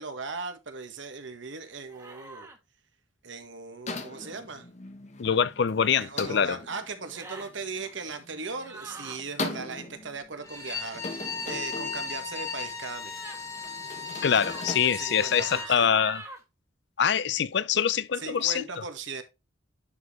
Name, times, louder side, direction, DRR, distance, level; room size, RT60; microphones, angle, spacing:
voice 1, 0.0-2.5 3.2-4.7 6.0-13.2 14.8-16.0 18.2-19.2, right 4 dB, 70° right, 1.6 m, -38 dB
sound 1, 1.9-2.6 4.1-4.4 5.7-6.1 7.0-7.5 8.6-9.2 13.1-13.5 14.3-14.7 15.3-16.4, right 2 dB, 15° right, 1.5 m, -44 dB
sound 2, 3.9-14.8, left 3 dB, 35° left, 1.1 m, -40 dB
voice 2, 5.2-6.6 14.2-16.2 17.0-18.6, left 7 dB, 60° left, 0.5 m, -24 dB
Bowed string instrument, 10.4-15.7, left 5 dB, 15° left, 1.3 m, -36 dB
11.0 x 4.4 x 3.1 m
head